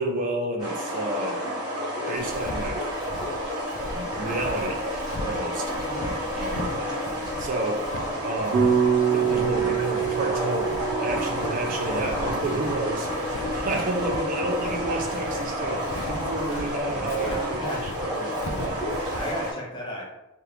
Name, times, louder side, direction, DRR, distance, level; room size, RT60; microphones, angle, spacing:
voice 1, 0.0-1.4 2.1-2.9 3.9-4.8 5.2-5.8 6.3-6.7 7.4-7.9 8.2-8.8 9.0-19.0, right 2 dB, 40° right, 2 dB, 0.3 m, -31 dB
sound 1, 0.6-19.5, equal, 20° right, 1.0 m, -30 dB
Walk footsteps, 2.2-19.5, left 1 dB, 70° left, 0.4 m, -39 dB
voice 2, 5.9-6.2 17.3-17.8 19.1-20.0, equal, 25° left, -3 dB, 0.8 m, -34 dB
sound 2, 8.5-12.8, right 7 dB, 60° right, 0.7 m, -25 dB
2.8 x 2.5 x 3.3 m, 0.99 s
head